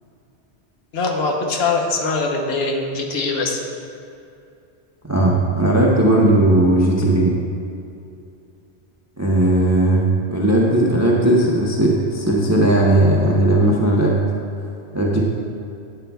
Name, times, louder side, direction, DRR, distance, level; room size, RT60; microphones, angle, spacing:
voice 1, 0.9-3.6, left 3 dB, 65° left, 1 dB, 1.1 m, -22 dB
voice 2, 5.1-7.3 9.2-14.2 14.9-15.2, right 1 dB, 20° right, -3 dB, 0.6 m, -17 dB
11.5 x 8.8 x 2.3 m, 2.6 s
omnidirectional pair, 1.1 m